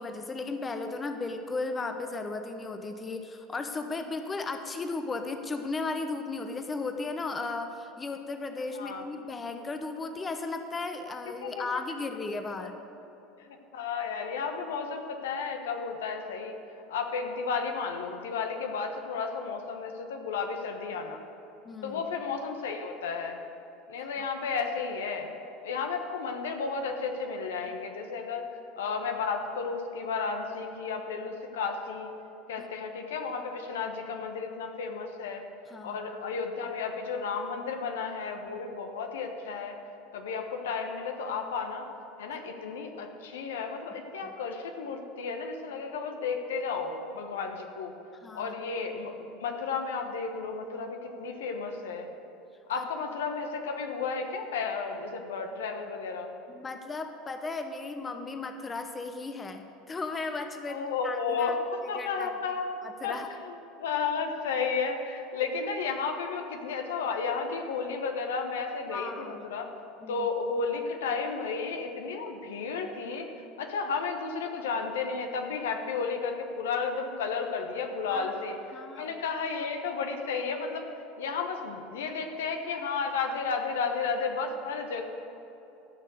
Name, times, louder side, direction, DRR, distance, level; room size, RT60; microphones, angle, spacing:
voice 1, 0.0-12.8 21.6-22.0 24.0-24.1 32.6-32.7 35.7-36.1 44.2-44.3 48.2-48.5 52.7-52.9 56.5-61.5 62.0-62.3 62.8-63.4 68.9-69.5 70.0-70.3 78.1-78.3 78.7-79.2, left 3 dB, 25° left, 7 dB, 0.9 m, -35 dB
voice 2, 13.7-16.5 16.9-21.2 21.8-23.4 23.9-25.3 25.6-28.5 28.8-32.1 32.5-35.4 35.8-39.8 40.1-41.9 42.2-47.9 48.3-52.1 52.7-56.3 60.7-62.7 63.0-63.2 63.4-69.7 70.1-73.3 73.6-80.8 81.2-85.0, left 5 dB, 70° left, 4 dB, 1.1 m, -33 dB
13.5 x 6.5 x 8.0 m, 3.0 s
figure-of-eight pair, 75°, 0 cm